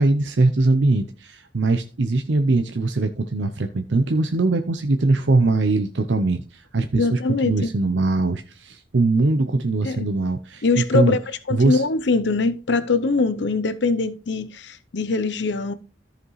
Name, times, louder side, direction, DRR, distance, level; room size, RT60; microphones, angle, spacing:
voice 1, 0.0-11.2 11.5-11.8, right 3 dB, 65° right, 0.6 m, -21 dB
voice 2, 6.9-7.7 9.8-10.1 10.6-11.2 11.5-15.7, left 3 dB, 65° left, 0.7 m, -22 dB
14.0 x 5.0 x 3.1 m
head